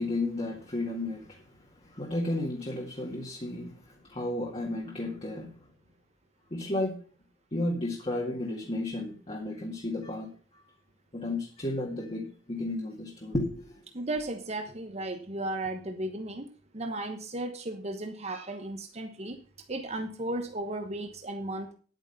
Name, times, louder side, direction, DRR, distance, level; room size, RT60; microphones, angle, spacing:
voice 1, 0.0-1.4 1.8-5.6 6.5-7.0 7.5-10.3 11.1-13.8, left 1 dB, 30° left, 2.1 m, -33 dB
voice 2, 13.9-16.5 16.7-19.4 19.7-21.7, right 1 dB, 35° right, 1.1 m, -35 dB
10.0 x 9.2 x 5.5 m
head